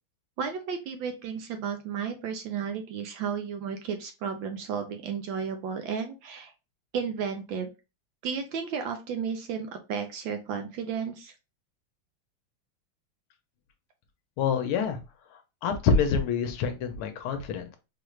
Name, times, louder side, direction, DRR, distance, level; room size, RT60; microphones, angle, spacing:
voice 1, 0.4-6.5 6.9-7.7 8.2-11.3, right 6 dB, 75° right, 5 dB, 1.2 m, -33 dB
voice 2, 14.4-15.0 15.6-17.8, left 5 dB, 80° left, 7 dB, 1.5 m, -26 dB
4.5 x 2.4 x 3.1 m, 0.28 s
omnidirectional pair, 2.4 m